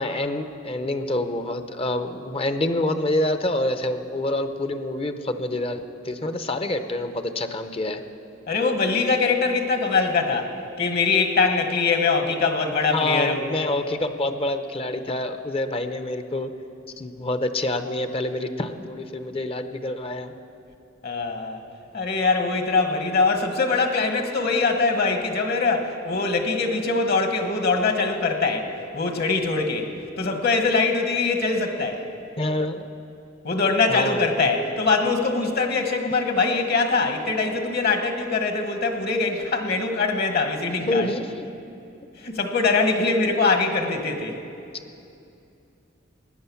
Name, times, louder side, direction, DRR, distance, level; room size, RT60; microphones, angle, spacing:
voice 1, 0.0-8.0 12.9-16.5 17.0-20.3 32.4-32.8 33.9-34.4 40.8-41.5, left 1 dB, 30° left, 9 dB, 0.7 m, -27 dB
voice 2, 8.5-10.5 10.8-13.5 21.0-21.6 21.9-28.7 28.9-29.9 30.2-32.0 33.4-41.1 42.2-44.4, left 4 dB, 55° left, 5 dB, 1.5 m, -22 dB
15.5 x 9.9 x 7.1 m, 2.6 s
head